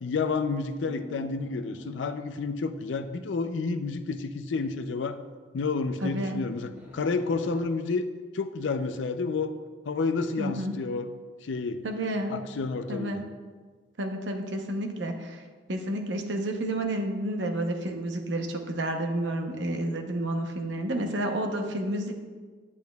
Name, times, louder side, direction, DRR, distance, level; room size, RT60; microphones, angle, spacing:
voice 1, 0.0-5.2 5.5-8.1 8.3-9.5 9.9-11.1 11.4-11.8 12.3-13.2, left 4 dB, 75° left, 9 dB, 0.4 m, -30 dB
sound 1, 0.8-2.7 6.8-7.6, right 1 dB, 10° right, 1.6 m, -49 dB
voice 2, 6.0-6.4 10.4-10.8 11.8-12.3 12.9-13.2 14.0-15.4 15.7-22.1, right 1 dB, 75° right, 4 dB, 0.8 m, -30 dB
8.4 x 8.4 x 2.3 m, 1.5 s
head